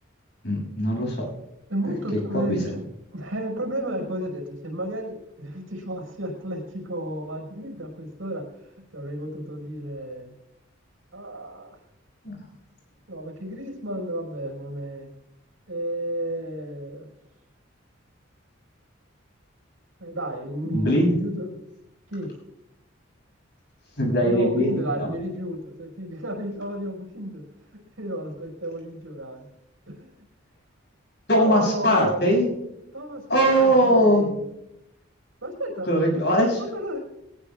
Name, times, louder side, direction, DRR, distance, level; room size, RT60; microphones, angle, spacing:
voice 1, 0.4-1.3 2.3-2.7 12.2-12.3 20.6-21.2 24.0-25.1 31.3-32.5 33.3-34.3 35.9-36.6, equal, 55° left, 0 dB, 7.1 m, -21 dB
voice 2, 1.7-2.8 3.1-8.5 8.9-10.3 11.1-11.8 13.1-15.1 15.7-17.1 20.0-21.6 22.1-22.3 24.2-27.5 28.0-29.5 29.9-30.1 31.4-32.5 32.9-34.4 35.4-35.9 36.6-37.0, right 1 dB, 85° right, 2 dB, 5.3 m, -32 dB
21.5 x 19.0 x 2.4 m, 0.85 s
head